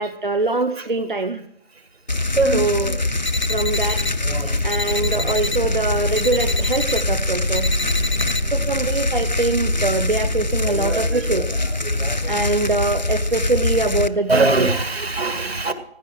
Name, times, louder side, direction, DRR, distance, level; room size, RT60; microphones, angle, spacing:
voice 1, 0.0-1.4 2.5-3.0 3.4-4.0 4.6-7.7 8.5-11.6 12.3-14.7, right 2 dB, 50° right, 8 dB, 0.7 m, -23 dB
sound 1, 2.1-14.1, left 2 dB, 45° left, 0.5 m, -23 dB
sound 2, 3.2-10.5, right 3 dB, 85° right, 2.9 m, -33 dB
sound 3, 3.3-4.1 4.7-5.6 6.2-7.0 7.5-8.4, left 3 dB, 75° left, 0.9 m, -28 dB
voice 2, 4.2-5.3 10.6-12.3 14.3-15.7, right 2 dB, 65° right, 10 dB, 1.9 m, -23 dB
15.5 x 11.5 x 4.7 m, 0.75 s
figure-of-eight pair, 170°, 33 cm